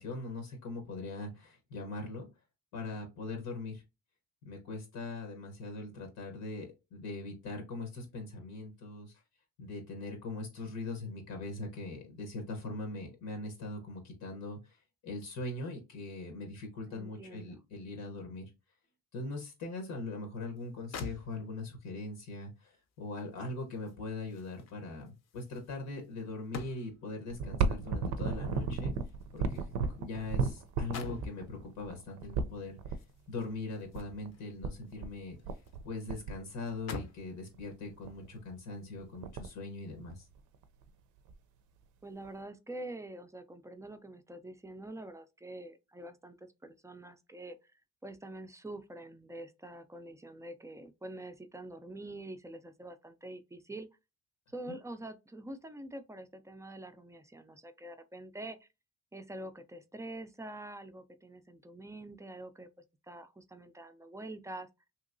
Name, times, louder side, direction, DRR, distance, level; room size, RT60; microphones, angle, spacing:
voice 1, 0.0-2.3 2.7-3.8 4.4-9.1 9.6-14.8 15.0-18.4 19.1-28.9 29.3-29.7 30.0-32.8 33.3-35.4 35.8-40.2, left 2 dB, 85° left, 1.0 m, -41 dB
voice 2, 16.9-17.6 42.0-47.6 48.0-53.9 54.5-58.7 59.1-62.7 63.1-64.7, right 1 dB, 10° right, 0.3 m, -46 dB
sound 1, 20.6-20.7 20.9-21.8 23.2-27.2 28.3-30.4 30.7-31.4 32.9-34.5 34.9-35.8 36.1-36.2 36.7-37.3 38.0-38.2, left 4 dB, 60° left, 0.6 m, -47 dB
sound 2, 27.3-33.0 33.9-34.0 34.3-34.4 34.6-35.1 35.4-35.8 36.1-37.0 37.5-37.6 38.0-38.3 38.7-38.8 39.0-39.6 40.1-40.9 41.3-41.4 42.2-42.3, right 4 dB, 80° right, 0.5 m, -34 dB
3.0 x 2.8 x 2.5 m
cardioid pair, 90°, 30 cm